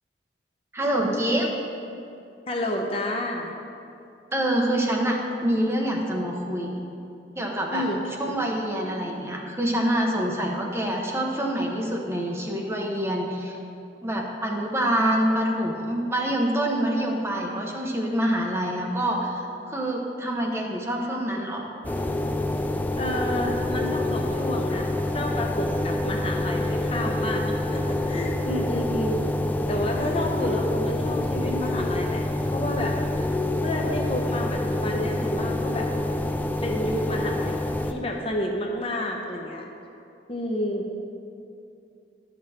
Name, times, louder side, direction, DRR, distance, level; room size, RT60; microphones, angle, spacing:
voice 1, 0.7-1.5 4.3-6.8 7.3-7.9 8.2-13.6 14.0-21.7, right 1 dB, 15° right, -1 dB, 0.9 m, -26 dB
voice 2, 2.5-3.6 7.7-8.0 23.0-29.2 29.7-33.0 33.6-35.9 36.6-39.7 40.3-40.8, left 1 dB, 30° left, 1 dB, 0.7 m, -30 dB
sound 1, 21.8-37.9, left 1 dB, 10° left, 0.3 m, -27 dB
11.0 x 6.7 x 4.2 m, 2.6 s
head